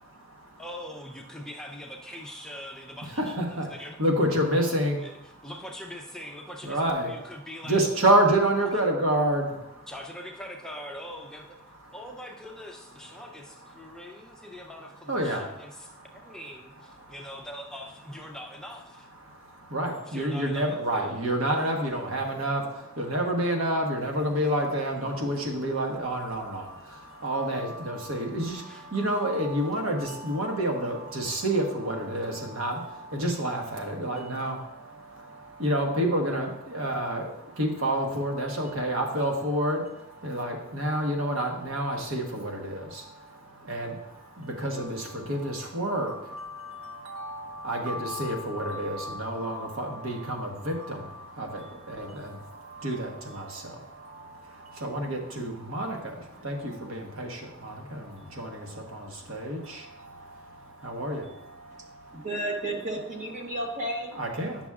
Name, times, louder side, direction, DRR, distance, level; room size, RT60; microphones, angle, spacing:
voice 1, 0.6-4.0 5.0-5.1 5.4-7.8 9.9-11.7 11.9-19.1 20.0-22.0 28.7-28.9, equal, 5° left, 0 dB, 0.5 m, -42 dB
voice 2, 4.0-5.0 6.6-7.1 7.7-9.5 15.1-15.4 19.7-22.6 23.0-26.6 27.2-28.6 28.9-32.8 33.1-34.6 35.6-37.2 37.6-39.8 40.2-42.8 43.7-43.9 44.6-51.0 51.4-52.3 52.8-53.5 54.8-56.0 56.4-57.3 57.6-58.0 58.4-58.5 58.9-59.8 60.8-61.2 64.2-64.6, right 1 dB, 75° right, 1 dB, 1.3 m, -28 dB
voice 3, 62.1-64.1, right 1 dB, 35° right, 0 dB, 1.3 m, -32 dB
9.7 x 6.0 x 2.4 m, 0.86 s
head